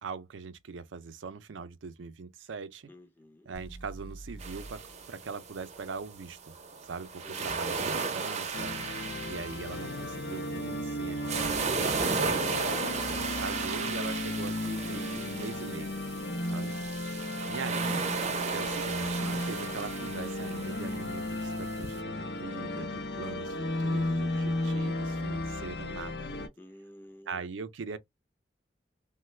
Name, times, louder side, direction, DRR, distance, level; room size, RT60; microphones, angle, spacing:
voice 1, 0.0-2.9 3.5-4.8 5.1-6.5 6.8-8.7 9.2-12.5 13.1-15.9 16.4-18.0 18.5-26.3 27.3-28.0, right 5 dB, 80° right, 0.5 m, -41 dB
voice 2, 2.9-3.5 7.2-8.0 26.6-27.6, left 1 dB, 10° left, 0.5 m, -52 dB
sound 1, 3.5-7.5, right 2 dB, 80° left, 0.9 m, -49 dB
sound 2, 4.4-22.0, right 5 dB, 35° right, 0.6 m, -35 dB
sound 3, 8.5-26.5, left 1 dB, 55° left, 0.5 m, -34 dB
3.1 x 2.1 x 3.1 m
head